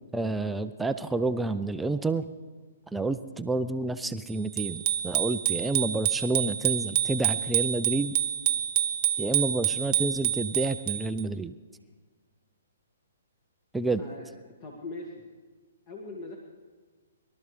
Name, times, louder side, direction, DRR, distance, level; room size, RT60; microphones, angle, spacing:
voice 1, 0.1-2.3 2.9-8.1 9.2-11.6 13.7-14.0, right 2 dB, 5° right, 9 dB, 0.4 m, -29 dB
Bicycle bell, 4.6-11.2, right 11 dB, 40° right, 0.9 m, -28 dB
voice 2, 14.0-14.3 14.6-15.2 15.9-16.4, left 2 dB, 30° left, 0 dB, 1.7 m, -40 dB
22.5 x 12.5 x 3.3 m, 1.4 s
hypercardioid pair, 130°, 0 cm